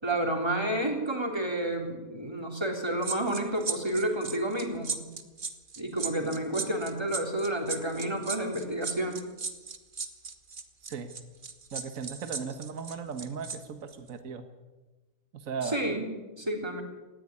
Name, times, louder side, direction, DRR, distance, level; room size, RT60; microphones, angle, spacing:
voice 1, 0.0-5.1 5.8-9.2 15.6-16.8, right 1 dB, 15° right, 2 dB, 3.6 m, -30 dB
sound 1, 3.0-13.6 13.9-14.1, right 5 dB, 35° right, 1.5 m, -36 dB
voice 2, 11.7-14.4 15.3-15.8, right 6 dB, 65° right, 7 dB, 1.7 m, -37 dB
19.0 x 15.0 x 9.8 m, 1.2 s
omnidirectional pair, 1.6 m